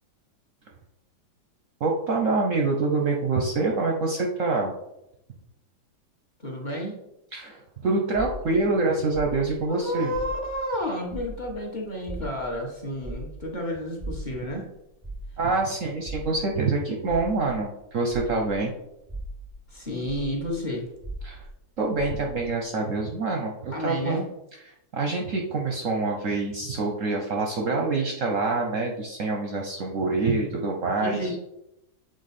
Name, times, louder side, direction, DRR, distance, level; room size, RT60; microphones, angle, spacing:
voice 1, 1.8-4.7 7.3-10.1 15.4-18.7 21.2-21.4 21.8-24.2 24.9-31.4, right 3 dB, 60° right, 1 dB, 0.8 m, -26 dB
voice 2, 6.4-7.0 9.7-14.7 19.7-20.9 23.7-24.3 31.0-31.4, left 1 dB, 30° left, -1 dB, 1.0 m, -31 dB
sound 1, 8.1-10.8 11.1-18.6 19.0-22.5, right 2 dB, 10° left, 0.6 m, -39 dB
7.9 x 3.9 x 4.2 m, 0.86 s
omnidirectional pair, 2.1 m